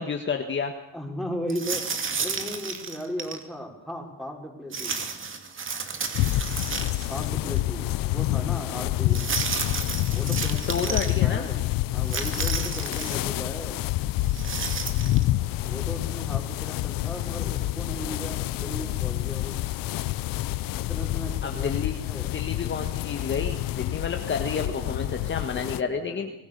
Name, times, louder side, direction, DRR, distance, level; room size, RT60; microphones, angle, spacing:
voice 1, 0.0-0.7 10.7-11.5 12.9-13.0 21.4-22.0 22.3-26.3, left 5 dB, 35° left, 4 dB, 1.7 m, -30 dB
voice 2, 0.9-1.9 2.2-5.0 7.1-9.4 10.1-11.7 11.9-13.8 15.6-19.6 20.8-22.3 24.5-26.3, equal, ahead, 0 dB, 5.4 m, -37 dB
sound 1, 1.5-3.4 4.7-7.3 7.6-7.7 9.1-11.1 12.0-13.3 14.2-15.2, right 5 dB, 35° right, 2.6 m, -32 dB
sound 2, 6.1-25.8, left 16 dB, 85° left, 0.8 m, -28 dB
26.5 x 19.0 x 6.9 m, 0.88 s
cardioid pair, 125°, 33 cm